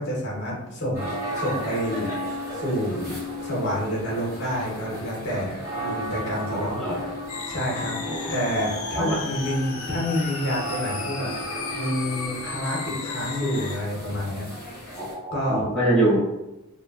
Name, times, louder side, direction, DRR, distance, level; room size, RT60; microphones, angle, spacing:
voice 1, 0.0-2.1 2.5-7.1 7.5-7.9 8.3-11.3 11.7-14.5 15.3-15.7, equal, 55° left, -4 dB, 0.8 m, -28 dB
sound 1, 0.9-15.1, equal, 15° right, 1.1 m, -35 dB
voice 2, 6.5-7.0 8.0-8.3 8.9-9.2 14.9-16.2, right 1 dB, 5° left, -9 dB, 0.7 m, -24 dB
sound 2, 7.3-13.7, left 4 dB, 85° left, 0.5 m, -34 dB
3.0 x 2.2 x 2.3 m, 0.99 s
head